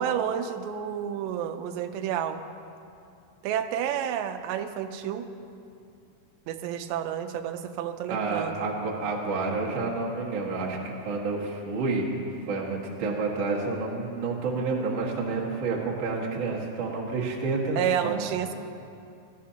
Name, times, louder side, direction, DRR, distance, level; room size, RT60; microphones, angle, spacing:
voice 1, 0.0-2.4 3.4-5.3 6.5-8.7 17.8-18.5, right 9 dB, 85° right, 8 dB, 2.8 m, -30 dB
voice 2, 8.1-12.2 12.5-18.3, right 3 dB, 60° right, -4 dB, 1.3 m, -29 dB
18.5 x 14.0 x 2.8 m, 2.6 s
omnidirectional pair, 4.9 m